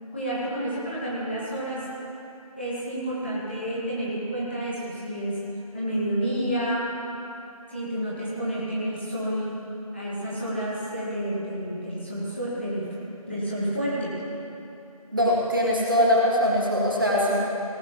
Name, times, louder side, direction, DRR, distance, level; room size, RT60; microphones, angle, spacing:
voice 1, 0.1-1.9 2.5-5.4 5.7-6.9 7.7-9.6 9.9-12.9 13.3-14.1, right 1 dB, 20° left, -8 dB, 1.7 m, -29 dB
voice 2, 15.1-17.4, equal, 35° right, -4 dB, 1.8 m, -22 dB
18.0 x 11.5 x 3.0 m, 2.8 s
figure-of-eight pair, 175°, 19 cm